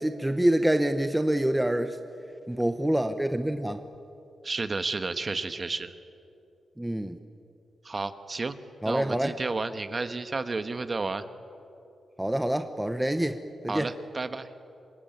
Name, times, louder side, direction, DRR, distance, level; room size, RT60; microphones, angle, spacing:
voice 1, 0.0-2.0 2.5-3.8 6.8-7.2 8.8-9.3 12.2-13.4 13.6-13.9, right 1 dB, 5° right, 8 dB, 0.8 m, -26 dB
voice 2, 4.4-5.9 7.8-8.5 8.8-11.2 13.7-14.5, right 3 dB, 30° right, 10 dB, 1.2 m, -31 dB
26.0 x 22.0 x 9.2 m, 2.7 s
wide cardioid pair, 140°, 0 cm